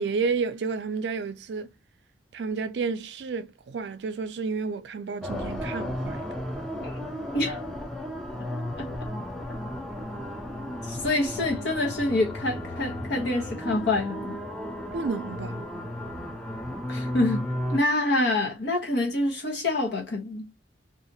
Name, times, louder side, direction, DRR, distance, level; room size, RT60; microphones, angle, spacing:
voice 1, 0.0-1.7 2.3-6.2 14.9-15.6, right 4 dB, 70° right, 0.4 m, -31 dB
sound 1, 5.2-17.8, left 1 dB, 5° left, 0.5 m, -34 dB
voice 2, 7.3-7.7 8.3-8.5 8.8-8.9 10.8-14.4 16.9-20.5, left 2 dB, 70° left, 0.9 m, -27 dB
2.8 x 2.4 x 2.6 m
head